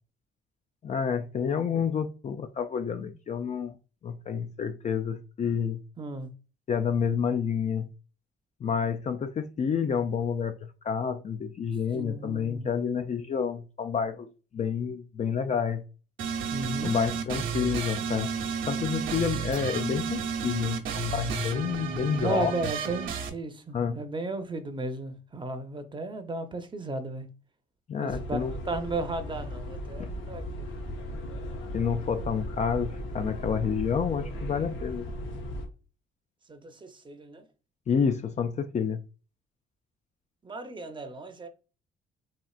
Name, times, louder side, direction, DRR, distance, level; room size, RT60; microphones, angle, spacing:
voice 1, 0.8-3.8 4.0-5.8 6.7-7.9 8.6-10.6 10.8-15.8 16.8-18.3 18.7-22.5 23.7-24.0 27.9-28.6 30.0-30.1 31.7-35.1 37.9-39.0, left 6 dB, 35° left, 0.4 m, -29 dB
voice 2, 6.0-6.3 11.9-12.7 16.5-16.9 22.2-27.3 28.0-30.7 36.5-37.4 40.4-41.5, right 2 dB, 25° right, 0.7 m, -35 dB
sound 1, 16.2-23.3, right 6 dB, 75° right, 0.8 m, -32 dB
sound 2, 28.1-35.7, equal, 80° left, 0.9 m, -36 dB
4.3 x 2.5 x 2.3 m
cardioid pair, 90°, 20 cm